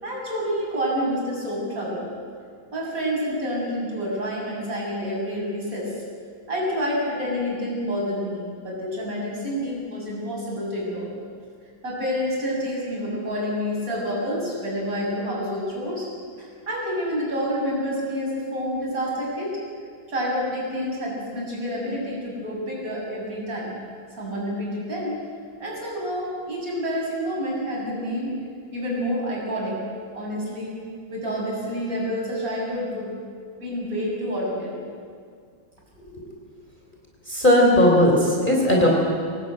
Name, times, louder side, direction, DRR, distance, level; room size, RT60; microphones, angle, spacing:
voice 1, 0.0-2.1 2.7-6.0 6.5-11.1 11.8-16.1 16.4-19.6 20.1-23.8 24.2-25.2 25.6-28.4 28.7-29.8 30.1-30.8 31.1-33.1 33.6-34.9, equal, 45° right, -4 dB, 7.4 m, -28 dB
voice 2, 37.3-38.9, left 1 dB, 25° left, -2 dB, 3.7 m, -17 dB
23.0 x 18.5 x 9.1 m, 2.1 s
omnidirectional pair, 2.1 m